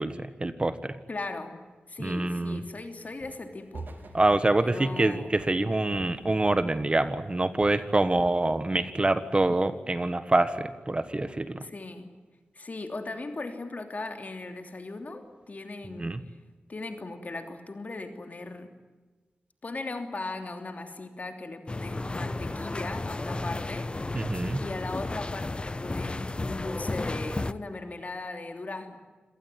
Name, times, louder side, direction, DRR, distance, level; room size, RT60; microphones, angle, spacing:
voice 1, 0.0-1.0 2.0-2.6 4.1-11.6 16.0-16.2 24.1-24.6, right 2 dB, 30° right, 12 dB, 1.4 m, -26 dB
voice 2, 1.1-1.6 1.9-3.9 4.6-5.3 11.6-12.1 12.5-16.1 16.7-18.7 19.6-23.9 24.6-29.0, left 2 dB, 45° left, 6 dB, 3.1 m, -38 dB
Walk footsteps, 3.2-3.5 3.7-6.8 7.0-7.3 7.6-9.0 9.3-9.7, right 3 dB, 65° right, 3.0 m, -45 dB
sound 1, 21.7-27.5, left 2 dB, 30° left, 0.9 m, -33 dB
26.5 x 18.0 x 9.8 m, 1.3 s
wide cardioid pair, 65°, 4 cm